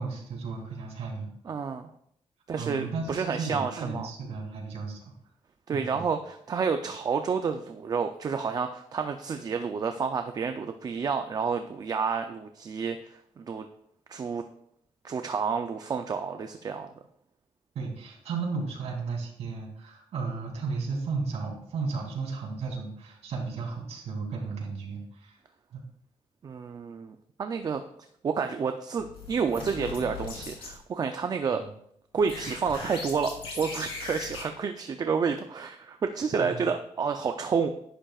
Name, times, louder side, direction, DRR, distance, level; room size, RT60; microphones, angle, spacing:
voice 1, 0.0-1.3 2.5-5.0 5.7-6.0 17.7-25.4 25.7-25.8 31.5-31.7 36.4-36.5, right 4 dB, 75° right, -1 dB, 2.8 m, -34 dB
voice 2, 1.4-1.9 2.5-4.1 5.7-13.7 14.1-14.4 15.0-16.9 26.4-27.8 28.2-31.6 32.1-37.7, right 5 dB, 40° right, 7 dB, 0.5 m, -30 dB
sound 1, 29.0-30.7 32.2-34.4, left 4 dB, 60° left, 3.2 m, -39 dB
11.0 x 10.5 x 2.4 m, 0.71 s
wide cardioid pair, 155°, 11 cm